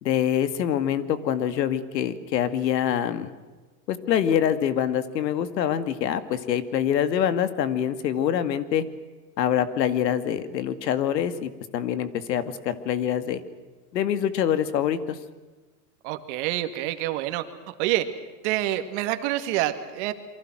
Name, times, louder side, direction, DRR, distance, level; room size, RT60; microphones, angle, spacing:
voice 1, 0.0-3.3 3.9-8.8 9.4-13.4 13.9-15.2, left 9 dB, 80° left, 12 dB, 2.3 m, -25 dB
voice 2, 16.0-17.4 17.8-18.1 18.4-20.1, right 14 dB, 45° right, 9 dB, 2.2 m, -27 dB
29.0 x 24.0 x 6.2 m, 1.3 s
supercardioid pair, 160°, 50 cm